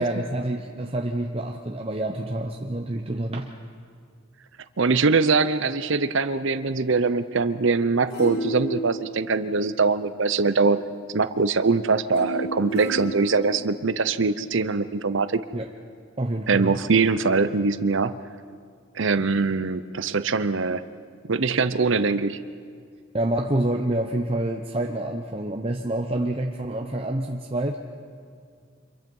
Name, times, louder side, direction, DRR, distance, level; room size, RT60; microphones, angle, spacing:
voice 1, 0.0-3.5 15.5-15.7 16.2-16.8 23.1-27.8, right 1 dB, 25° right, 2 dB, 0.8 m, -27 dB
voice 2, 4.8-10.8 11.1-15.4 16.5-18.2 19.0-20.8 21.3-22.4, right 4 dB, 60° right, 13 dB, 0.7 m, -22 dB
sound 1, 7.8-10.1 12.2-14.2 14.7-14.8, right 1 dB, 55° left, 6.2 m, -33 dB
26.5 x 22.5 x 5.5 m, 2.1 s
head